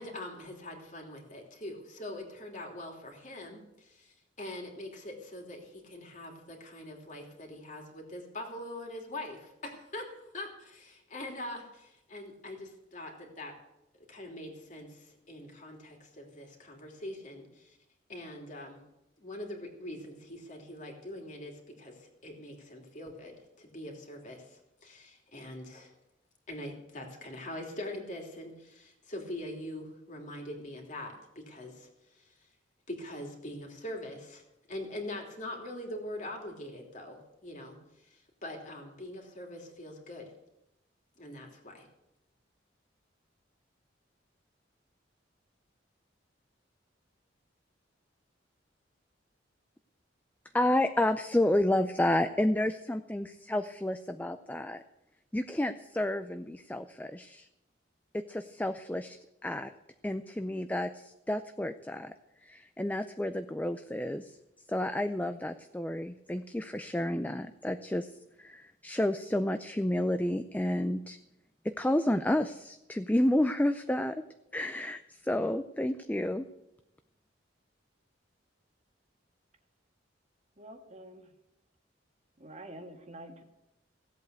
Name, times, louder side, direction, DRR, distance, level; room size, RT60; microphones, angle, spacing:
voice 1, 0.0-10.1 10.3-13.5 14.1-17.8 18.1-18.8 19.2-25.9 26.5-32.5 32.9-34.4 34.7-40.3 41.2-41.9, left 1 dB, 40° left, 1 dB, 3.0 m, -43 dB
voice 2, 50.5-54.8 55.3-57.5 58.3-59.7 60.0-62.1 62.4-64.4 64.7-68.1 68.4-71.2 71.6-74.2 74.5-76.5, left 1 dB, 10° left, 9 dB, 0.4 m, -30 dB
voice 3, 80.6-81.2 82.4-83.4, right 1 dB, 35° right, 5 dB, 1.6 m, -47 dB
16.0 x 8.3 x 8.1 m, 0.90 s
head